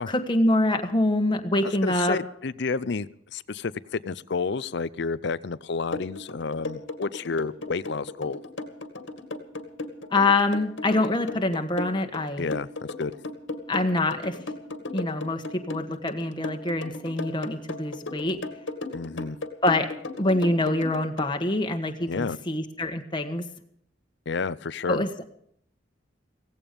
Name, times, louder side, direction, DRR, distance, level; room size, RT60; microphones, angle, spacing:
voice 1, 0.1-2.2 10.1-12.5 13.7-14.4 14.9-18.4 19.6-19.9 20.2-23.4 24.9-25.1, left 2 dB, 25° left, 4 dB, 1.4 m, -25 dB
voice 2, 1.6-8.4 12.4-13.1 18.9-19.4 22.1-22.4 24.3-25.0, left 4 dB, 65° left, 17 dB, 0.6 m, -30 dB
sound 1, 5.9-21.3, left 2 dB, 85° left, 2.1 m, -35 dB
16.5 x 16.0 x 5.2 m, 0.66 s
head